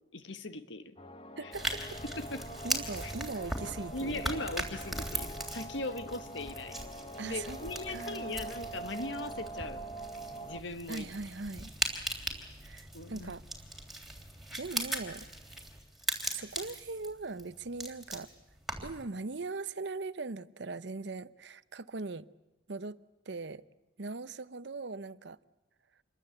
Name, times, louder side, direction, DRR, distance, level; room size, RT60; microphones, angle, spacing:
voice 1, 0.1-0.9 1.4-1.5 2.2-2.5 3.9-6.8 7.2-9.9 10.4-11.1 12.7-13.3, left 2 dB, 75° left, 10 dB, 1.5 m, -39 dB
sound 1, 1.0-10.6, right 2 dB, 30° left, 0.9 m, -44 dB
voice 2, 1.4-2.0 2.6-4.4 7.2-8.4 10.9-11.7 12.6-13.4 14.6-15.3 16.3-18.3 18.8-22.3 22.7-23.6 24.0-25.4, right 3 dB, 65° right, 16 dB, 0.8 m, -40 dB
sound 2, 1.5-19.0, right 1 dB, ahead, 3.3 m, -39 dB
27.5 x 22.5 x 8.0 m, 1.0 s
head